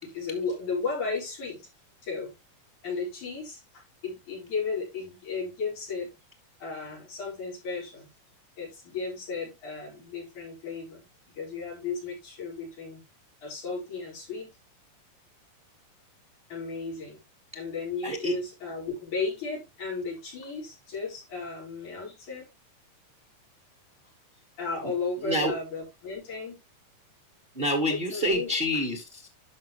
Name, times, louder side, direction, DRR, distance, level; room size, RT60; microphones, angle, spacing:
voice 1, 0.0-1.6 2.0-2.3 2.8-6.1 6.6-8.1 8.6-11.1 11.4-13.0 13.4-14.5 16.5-17.2 17.5-22.5 24.6-26.6 27.9-28.5, left 4 dB, 65° left, 5.9 m, -34 dB
voice 2, 18.0-18.3 25.2-25.5 27.5-29.3, equal, 60° right, 0.5 m, -27 dB
11.5 x 5.4 x 3.0 m
omnidirectional pair, 3.8 m